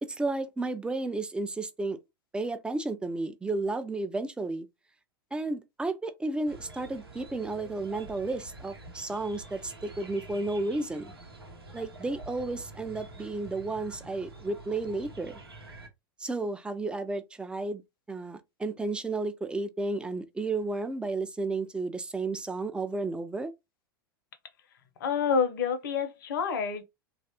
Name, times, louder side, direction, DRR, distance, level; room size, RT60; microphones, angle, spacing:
voice 1, 0.0-2.0 2.3-4.7 5.3-11.1 11.7-15.4 16.2-17.8 18.1-23.5, right 2 dB, 10° right, 0.4 m, -32 dB
sound 1, 6.5-15.9, right 2 dB, 85° right, 0.8 m, -47 dB
voice 2, 25.0-26.8, left 6 dB, 60° left, 0.8 m, -28 dB
3.1 x 2.4 x 2.8 m
figure-of-eight pair, 90°, 12 cm